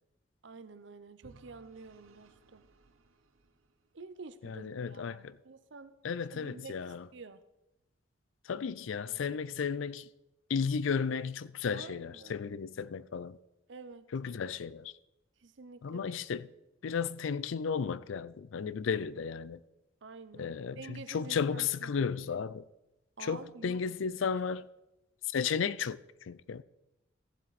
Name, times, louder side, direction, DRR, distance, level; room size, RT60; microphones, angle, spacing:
voice 1, 0.4-2.6 3.9-5.9 6.3-6.7 7.1-7.4 11.7-12.4 13.7-14.1 15.4-16.0 20.0-21.9 23.2-24.1, right 4 dB, 60° right, 0.7 m, -49 dB
Vehicle / Engine, 1.2-4.2, right 3 dB, 90° right, 0.9 m, -61 dB
voice 2, 4.4-5.4 6.0-7.0 8.5-10.1 10.5-13.4 14.1-14.9 15.8-16.5 16.8-19.6 20.4-22.6 23.2-24.7 25.3-26.6, left 6 dB, 70° left, 0.4 m, -34 dB
14.5 x 7.5 x 4.1 m
head